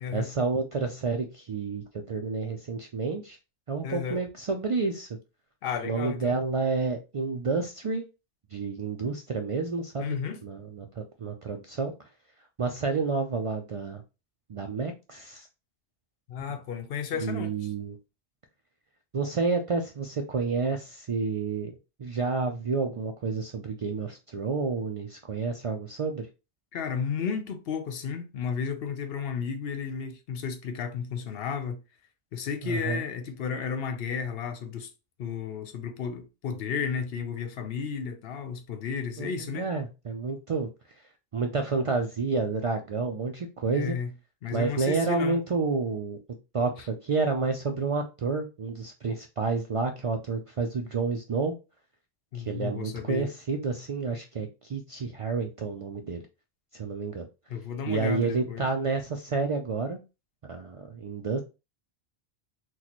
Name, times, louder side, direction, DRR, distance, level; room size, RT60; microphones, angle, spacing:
voice 1, 0.1-3.4 3.7-5.1 5.8-8.0 8.5-11.9 12.6-14.0 14.5-15.5 17.1-18.0 19.1-21.7 22.0-26.3 32.6-33.0 39.2-40.7 41.3-44.0 44.5-46.2 46.5-51.5 52.3-56.2 56.7-57.3 57.9-60.0 60.5-61.4, right 4 dB, 60° right, 0.3 m, -30 dB
voice 2, 3.8-4.2 5.6-6.4 10.0-10.4 16.3-17.5 26.7-31.8 32.3-34.9 35.2-39.7 43.7-44.1 44.4-45.4 52.3-53.3 57.5-58.6, left 6 dB, 70° left, 0.8 m, -33 dB
4.0 x 2.2 x 2.9 m
omnidirectional pair, 1.1 m